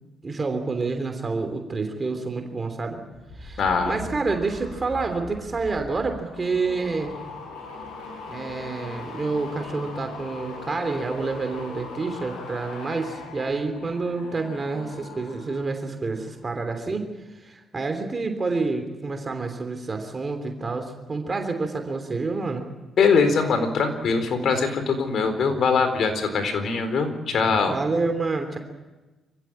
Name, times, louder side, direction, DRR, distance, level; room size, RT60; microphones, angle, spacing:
voice 1, 0.2-3.0 3.4-7.1 8.3-17.1 17.3-22.6 27.7-28.6, right 3 dB, 30° right, 6 dB, 3.1 m, -28 dB
sound 1, 3.1-15.8 16.1-16.5, left 2 dB, 90° left, 7.8 m, -40 dB
voice 2, 3.6-4.0 23.0-27.8, left 5 dB, 60° left, 8 dB, 4.0 m, -22 dB
26.5 x 15.5 x 8.8 m, 1.2 s
cardioid pair, 90°, 0 cm